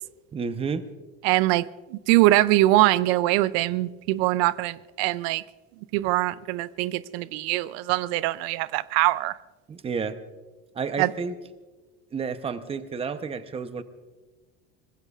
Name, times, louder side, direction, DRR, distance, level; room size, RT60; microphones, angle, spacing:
voice 1, 0.3-0.8 9.7-10.2 10.7-11.3 12.1-13.8, right 5 dB, 20° right, 0.7 m, -30 dB
voice 2, 1.2-1.7 1.9-5.4 5.9-9.3 11.0-11.1, right 17 dB, 85° right, 0.5 m, -22 dB
24.0 x 20.0 x 2.4 m
cardioid pair, 145°, 31 cm